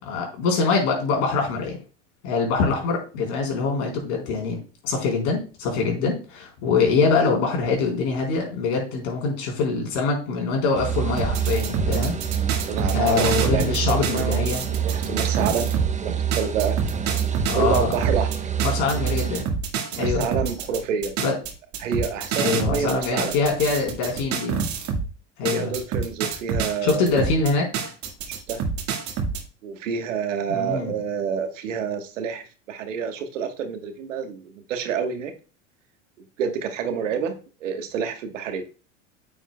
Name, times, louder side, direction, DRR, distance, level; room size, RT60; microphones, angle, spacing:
voice 1, 0.0-1.8 2.2-12.1 12.9-14.6 17.5-17.9 18.6-19.5 20.0-20.3 21.2-21.3 22.4-24.6 25.4-25.7 26.8-27.7 30.5-31.0, left 4 dB, 70° left, 0 dB, 4.1 m, -24 dB
sound 1, 10.7-19.4, right 8 dB, 20° right, 0.9 m, -26 dB
sound 2, 11.2-15.9 16.3-25.1 25.4-29.4, right 5 dB, 50° right, 1.8 m, -28 dB
voice 2, 12.7-15.7 16.0-16.8 17.5-18.3 19.9-21.1 21.8-23.3 25.5-27.1 28.5-28.6 29.6-35.3 36.4-38.6, right 6 dB, 80° right, 7 dB, 1.4 m, -28 dB
9.4 x 7.2 x 2.3 m, 0.35 s
hypercardioid pair, 90°, 37 cm